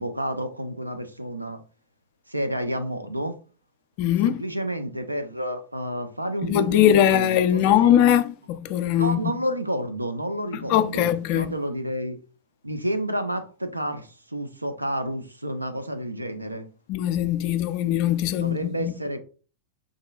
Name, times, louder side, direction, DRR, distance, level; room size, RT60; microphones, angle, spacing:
voice 1, 0.0-1.6 2.3-3.4 4.2-8.0 9.0-12.2 12.6-16.7 18.3-19.2, right 1 dB, 85° right, 0.3 m, -30 dB
voice 2, 4.0-4.4 6.4-9.3 10.7-11.5 16.9-18.9, left 11 dB, 45° left, 0.3 m, -21 dB
3.6 x 2.1 x 2.3 m
figure-of-eight pair, 90°, 0 cm